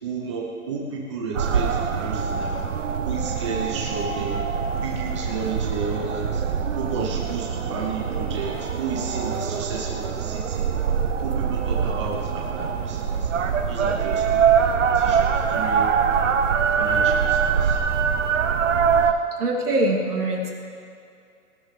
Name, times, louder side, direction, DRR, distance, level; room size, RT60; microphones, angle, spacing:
voice 1, 0.0-2.7 3.0-4.4 4.8-6.4 6.8-10.7 11.2-13.3 13.7-15.9 16.4-17.8, right 4 dB, 20° right, -3 dB, 0.8 m, -32 dB
sound 1, 1.3-19.1, right 7 dB, 55° right, 0.8 m, -23 dB
voice 2, 19.4-20.5, right 1 dB, 75° right, 0 dB, 2.8 m, -23 dB
18.0 x 12.5 x 3.3 m, 2.4 s
hypercardioid pair, 170°, 45 cm